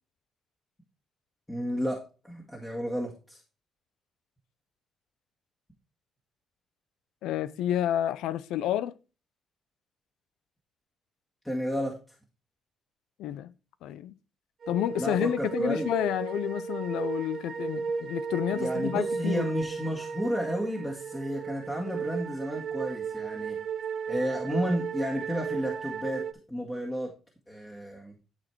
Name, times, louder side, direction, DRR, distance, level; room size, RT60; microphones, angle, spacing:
voice 1, 1.5-3.4 11.4-12.0 15.0-15.9 18.5-23.6 24.1-27.1 27.5-28.1, equal, 10° left, 1.9 m, -32 dB
voice 2, 7.2-8.9 13.2-13.5 13.8-14.1 14.7-19.5, left 11 dB, 90° left, 0.5 m, -30 dB
sound 1, 14.6-26.3, right 5 dB, 55° right, 1.0 m, -34 dB
11.5 x 4.3 x 4.5 m
cardioid pair, 90°, 0 cm